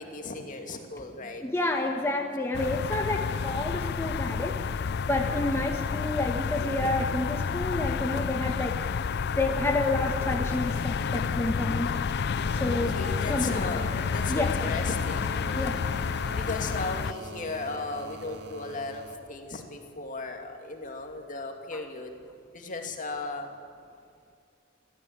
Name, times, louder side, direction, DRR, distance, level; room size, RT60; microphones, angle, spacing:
voice 1, 0.0-1.4 6.4-6.7 11.7-11.8 12.6-15.7 16.4-22.1 22.5-23.5, left 3 dB, 45° left, 3 dB, 2.5 m, -36 dB
voice 2, 1.4-4.6 5.1-8.8 9.4-11.9 12.5-13.0 13.3-13.6 14.3-14.5 15.5-15.8 21.7-21.8, left 2 dB, 15° left, 1 dB, 1.3 m, -29 dB
sound 1, 2.5-17.1, left 6 dB, 60° left, 0.4 m, -30 dB
sound 2, 9.8-19.1 20.6-20.7, right 2 dB, 65° right, 2.1 m, -44 dB
25.0 x 15.0 x 8.9 m, 2.4 s
head